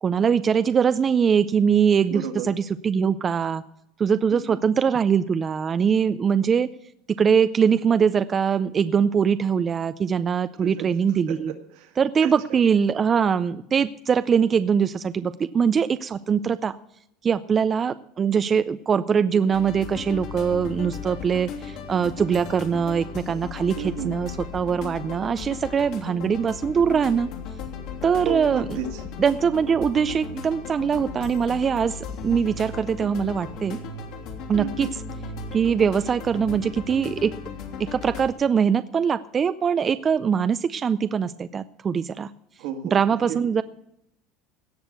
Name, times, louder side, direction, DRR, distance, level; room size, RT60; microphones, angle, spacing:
voice 1, 0.0-3.6 4.0-6.7 7.1-11.5 12.0-16.8 17.2-27.3 28.0-28.6 29.2-33.8 34.5-34.9 35.5-37.3 37.8-42.3 42.9-43.6, right 7 dB, 25° right, 12 dB, 0.4 m, -22 dB
voice 2, 2.1-2.5 4.3-4.6 10.6-10.9 11.3-12.0 12.2-12.6 23.8-24.2 28.2-29.0 34.6-34.9 42.6-43.5, right 9 dB, 70° right, 5 dB, 2.1 m, -33 dB
sound 1, 19.5-38.3, left 5 dB, 60° left, 2.9 m, -36 dB
17.0 x 6.3 x 7.9 m, 0.79 s
supercardioid pair, 140°, 0 cm